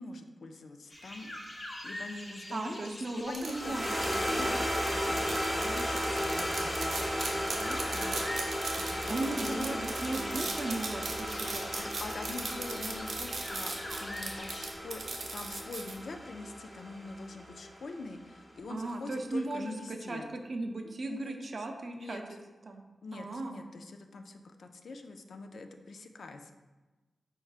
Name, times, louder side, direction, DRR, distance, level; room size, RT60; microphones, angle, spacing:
voice 1, 0.0-2.8 3.2-3.8 4.2-4.5 4.9-9.9 11.4-15.0 15.3-20.3 21.1-21.3 21.9-22.2 23.0-26.5, left 3 dB, 70° left, 6 dB, 0.3 m, -44 dB
sound 1, 0.9-14.7, left 1 dB, 30° left, 0.6 m, -45 dB
voice 2, 2.5-4.6 9.1-11.7 18.7-22.2 22.7-22.8 23.1-23.6, right 2 dB, 45° right, 4 dB, 0.4 m, -37 dB
sound 2, 3.3-15.9, right 3 dB, 85° right, 0.6 m, -38 dB
sound 3, 3.4-17.9, equal, 10° left, 1.1 m, -35 dB
4.6 x 4.4 x 2.4 m, 1.2 s
wide cardioid pair, 130°, 0 cm